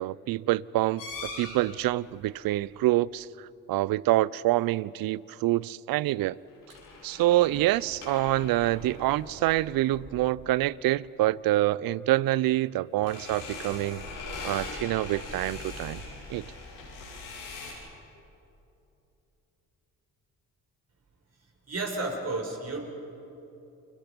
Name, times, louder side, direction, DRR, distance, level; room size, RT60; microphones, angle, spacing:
voice 1, 0.0-3.3 3.7-6.4 7.0-14.0 14.4-16.0 16.3-16.4, right 16 dB, 65° right, 0.6 m, -26 dB
Creaking Door, 1.0-1.9 6.5-10.3 13.0-17.7, left 3 dB, 90° left, 5.8 m, -41 dB
voice 2, 21.7-22.9, right 2 dB, 40° right, 5.7 m, -32 dB
29.5 x 22.5 x 5.3 m
hypercardioid pair, 55°, 39 cm